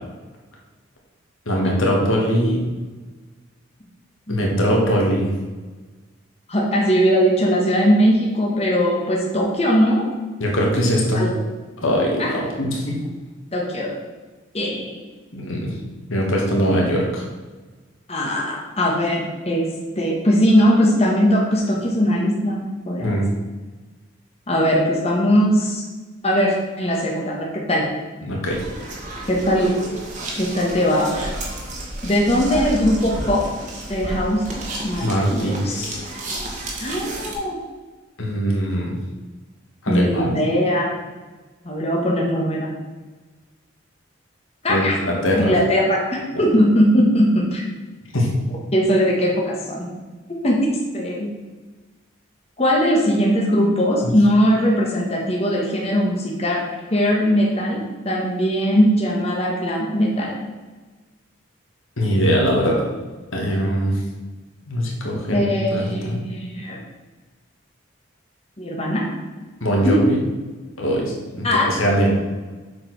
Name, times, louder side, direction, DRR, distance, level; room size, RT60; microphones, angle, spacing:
voice 1, 1.5-2.6 4.3-5.3 10.4-11.2 11.8-13.0 15.3-15.7 16.1-17.2 23.0-23.3 28.2-28.6 35.0-36.0 38.2-39.0 39.8-40.4 44.7-45.5 48.1-48.3 54.0-54.1 62.0-62.8 63.3-64.0 64.7-66.2 69.6-70.2 70.8-72.1, equal, 85° left, -2 dB, 2.2 m, -21 dB
voice 2, 4.3-4.7 6.5-10.1 11.1-11.3 12.2-12.3 13.5-14.0 14.5-15.0 18.1-19.6 20.0-23.2 24.5-25.8 26.2-27.9 29.3-29.7 30.4-31.3 32.0-33.5 33.9-34.4 34.8-35.8 36.8-37.6 39.9-40.9 41.6-42.7 44.6-45.0 45.4-47.6 48.7-49.9 50.4-50.7 50.9-51.3 52.6-56.6 56.9-60.4 65.3-66.8 68.6-69.0 69.8-69.9 71.4-71.7, equal, 30° left, -3 dB, 1.5 m, -20 dB
sound 1, 28.4-37.3, right 1 dB, 40° right, 1.7 m, -32 dB
7.5 x 5.1 x 6.1 m, 1.3 s
head